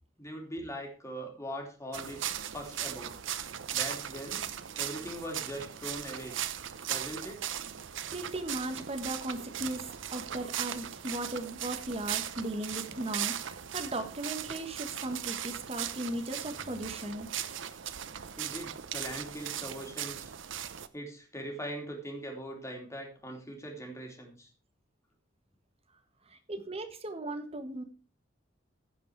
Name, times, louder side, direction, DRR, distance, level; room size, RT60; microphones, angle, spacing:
voice 1, 0.2-3.2 3.7-4.4 4.8-6.4 6.9-7.5 18.4-20.3 20.9-24.5, equal, 15° left, 1 dB, 2.8 m, -41 dB
sound 1, 1.9-20.9, right 10 dB, 80° right, 0.7 m, -38 dB
voice 2, 8.1-17.3 26.3-27.8, right 1 dB, 30° right, 6 dB, 1.5 m, -37 dB
15.5 x 5.3 x 4.7 m, 0.36 s
head